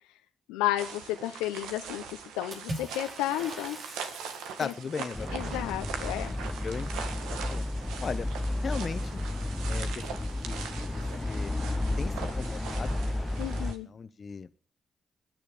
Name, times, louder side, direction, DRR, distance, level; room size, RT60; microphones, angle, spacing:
voice 1, 0.5-2.0 2.4-3.8 4.6-4.7 5.3-6.3 13.4-13.9, left 14 dB, 90° left, 7 dB, 0.8 m, -32 dB
sound 1, 0.8-13.8, right 6 dB, 85° right, 1.7 m, -41 dB
Water / Splash splatter, 2.5-4.9, right 1 dB, 60° right, 5.1 m, -41 dB
voice 2, 4.6-5.9 6.6-7.1 7.5-7.7 8.0-8.3 8.6-9.2 9.7-9.9 10.4-10.6 10.9-11.0 11.3-11.5 12.0-13.4 13.9-14.5, left 5 dB, 55° left, 14 dB, 1.1 m, -37 dB
sound 2, 5.1-13.7, left 1 dB, 25° left, 0.9 m, -32 dB
21.0 x 10.5 x 5.0 m, 0.40 s
hypercardioid pair, 40°, 0 cm